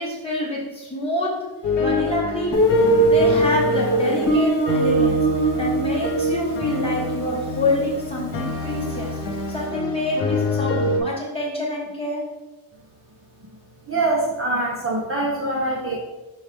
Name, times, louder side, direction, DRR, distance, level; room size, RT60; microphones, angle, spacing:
voice 1, 0.0-1.5 1.8-9.2 9.5-12.2, left 1 dB, 10° left, -5 dB, 1.6 m, -27 dB
sound 1, 1.6-11.0, left 1 dB, 60° left, 1.2 m, -25 dB
Guitar, 2.5-9.2, right 1 dB, 40° left, 2.0 m, -22 dB
voice 2, 13.9-16.0, right 2 dB, 30° right, -3 dB, 1.0 m, -24 dB
6.2 x 4.7 x 3.7 m, 1.1 s
wide cardioid pair, 160°, 47 cm